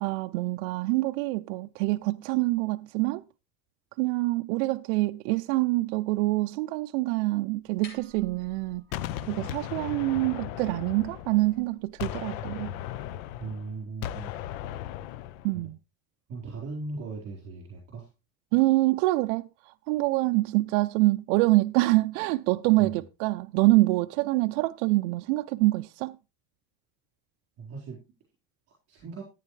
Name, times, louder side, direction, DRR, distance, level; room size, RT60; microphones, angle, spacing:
voice 1, 0.0-3.2 4.0-8.8 9.3-12.7 15.4-15.8 18.5-26.2, right 20 dB, 60° right, 0.5 m, -25 dB
sound 1, 7.5-13.5, left 3 dB, 55° left, 6.8 m, -56 dB
Gunshot gunfire, 8.9-11.6 12.0-15.5, left 12 dB, 75° left, 0.7 m, -36 dB
voice 2, 13.4-14.3 15.5-15.6 16.3-18.1 22.8-23.0 27.6-28.0 28.9-29.2, right 3 dB, 35° right, 4.2 m, -38 dB
14.0 x 9.2 x 3.2 m
cardioid pair, 170°, 41 cm